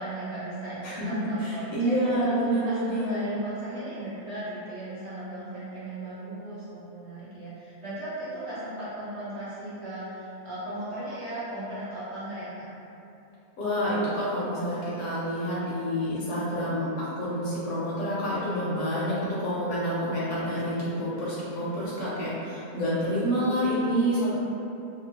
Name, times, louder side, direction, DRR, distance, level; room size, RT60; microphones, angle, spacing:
voice 1, 0.0-2.1 2.4-12.7 24.3-24.4, right 1 dB, 55° right, -11 dB, 0.8 m, -37 dB
voice 2, 0.8-3.3 13.6-24.3, equal, 65° left, -8 dB, 0.8 m, -28 dB
2.8 x 2.3 x 2.8 m, 2.8 s
omnidirectional pair, 1.6 m